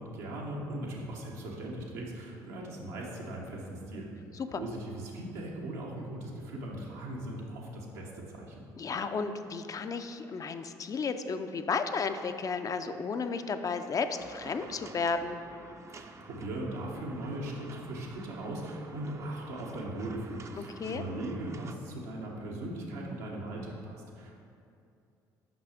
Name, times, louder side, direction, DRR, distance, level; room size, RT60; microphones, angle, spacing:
voice 1, 0.0-4.1 4.5-8.6 15.9-24.3, right 1 dB, 85° right, -3 dB, 1.1 m, -39 dB
voice 2, 8.8-15.4 20.8-21.0, left 5 dB, 40° left, 8 dB, 0.4 m, -33 dB
sound 1, 14.2-21.8, right 4 dB, 35° right, 0.5 m, -50 dB
5.9 x 5.6 x 5.0 m, 2.6 s
hypercardioid pair, 60°, 9 cm